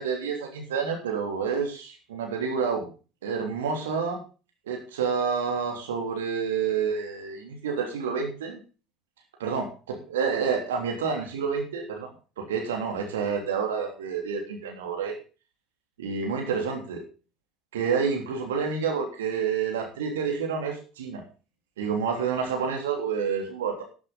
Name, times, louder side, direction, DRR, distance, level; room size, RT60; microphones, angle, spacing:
voice 1, 0.0-2.9 3.2-4.2 4.7-8.6 9.4-12.1 12.4-15.1 16.0-17.0 17.7-21.2 21.8-23.8, right 6 dB, 70° right, 3 dB, 3.2 m, -29 dB
12.0 x 11.0 x 4.0 m, 0.34 s
figure-of-eight pair, 65°, 0 cm